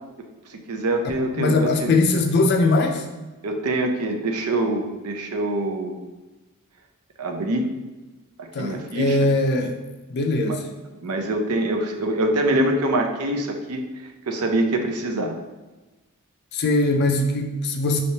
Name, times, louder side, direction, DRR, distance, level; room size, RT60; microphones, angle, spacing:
voice 1, 0.7-2.0 3.4-6.0 7.2-7.7 8.4-9.2 10.5-10.6 11.0-13.8 14.3-15.3, right 1 dB, 90° right, 5 dB, 0.6 m, -24 dB
voice 2, 1.2-3.0 8.5-9.8 10.1-10.6 16.5-18.0, left 2 dB, 50° left, 3 dB, 0.4 m, -21 dB
5.6 x 3.2 x 2.8 m, 1.1 s
head